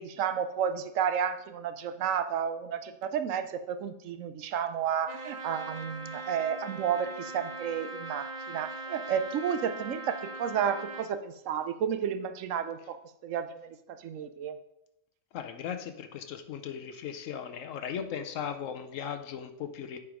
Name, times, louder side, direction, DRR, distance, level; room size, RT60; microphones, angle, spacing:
voice 1, 0.0-14.6, right 8 dB, 85° right, 11 dB, 1.1 m, -32 dB
Trumpet, 5.1-11.1, right 3 dB, 40° right, 0.8 m, -40 dB
voice 2, 15.3-20.0, left 8 dB, 85° left, 8 dB, 1.0 m, -37 dB
8.5 x 4.6 x 4.9 m, 0.81 s
omnidirectional pair, 1.3 m